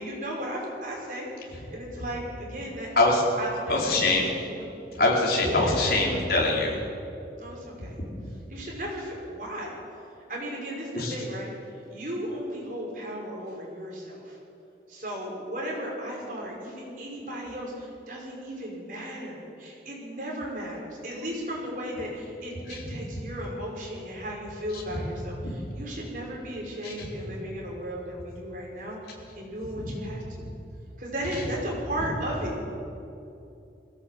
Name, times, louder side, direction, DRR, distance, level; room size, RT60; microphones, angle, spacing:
voice 1, 0.0-2.9 3.4-4.2 4.5-4.7 5.4-5.8 6.2-6.4 7.4-8.0 8.5-9.8 10.3-11.5 11.9-14.4 14.9-29.0 29.4-30.4 31.0-32.6, equal, 50° right, -2 dB, 5.9 m, -35 dB
voice 2, 3.7-4.3 4.9-6.8 8.1-8.3 10.9-11.1 22.7-23.0 24.7-24.8 25.4-25.7 26.8-27.4 29.8-29.9 30.4-30.5 32.0-32.1, left 2 dB, 60° left, -2 dB, 4.4 m, -25 dB
21.5 x 16.5 x 8.0 m, 2.7 s
head